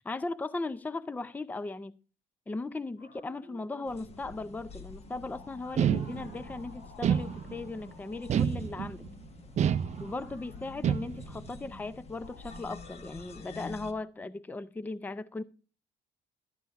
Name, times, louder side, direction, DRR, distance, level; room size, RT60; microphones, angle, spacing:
voice 1, 0.0-1.9 2.5-9.0 10.0-15.4, left 3 dB, 10° left, 0.5 m, -37 dB
sound 1, 3.0-14.0, left 2 dB, 65° left, 6.3 m, -53 dB
sound 2, 3.8-13.9, left 4 dB, 40° left, 1.3 m, -49 dB
sound 3, 5.8-6.5 7.0-7.8 8.3-9.1 9.6-10.4 10.8-11.4, right 9 dB, 45° right, 0.5 m, -28 dB
12.0 x 9.2 x 3.5 m
cardioid pair, 110°, 17 cm